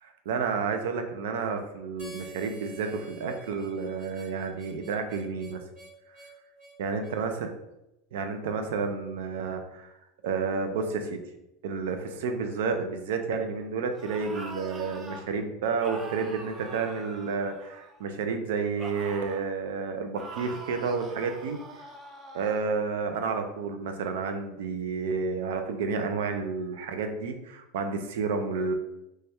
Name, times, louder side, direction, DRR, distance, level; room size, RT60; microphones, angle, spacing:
voice 1, 0.0-5.6 6.8-7.5 8.1-9.9 10.2-11.2 11.6-21.6 22.3-28.7, right 5 dB, 85° right, 6 dB, 0.5 m, -30 dB
Harmonica, 2.0-7.2, right 3 dB, 50° right, 1.2 m, -49 dB
sound 1, 13.9-15.3 15.8-18.1 18.8-19.5 20.1-22.6, right 3 dB, 20° right, 0.4 m, -43 dB
3.2 x 2.3 x 4.2 m, 0.91 s
supercardioid pair, 150°, 0 cm